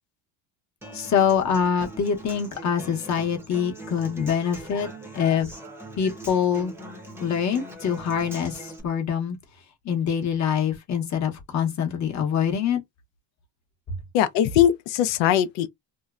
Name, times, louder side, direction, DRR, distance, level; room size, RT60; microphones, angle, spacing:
Human voice / Acoustic guitar, 0.8-8.8, right 1 dB, 5° right, 0.6 m, -41 dB
voice 1, 0.9-4.9 5.1-5.5 6.0-6.7 7.2-9.4 9.8-12.8, left 7 dB, 40° left, 0.8 m, -24 dB
voice 2, 14.1-15.7, left 11 dB, 75° left, 0.6 m, -20 dB
2.7 x 2.1 x 2.3 m
cardioid pair, 130°, 45 cm